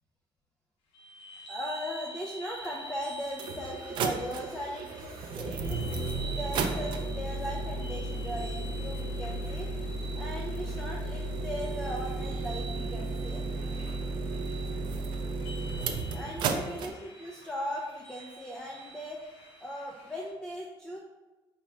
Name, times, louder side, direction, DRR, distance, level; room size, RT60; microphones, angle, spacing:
sound 1, 0.9-20.3, right 1 dB, 80° left, 0.8 m, -47 dB
voice 1, 1.5-5.8 6.3-9.8 10.2-13.8 14.5-14.6 16.1-19.3 19.6-21.0, equal, 10° left, -1 dB, 0.4 m, -38 dB
sound 2, 2.7-2.8 3.3-16.9, right 3 dB, 55° right, 0.4 m, -34 dB
4.6 x 2.2 x 4.3 m, 1.2 s
cardioid pair, 150°, 10 cm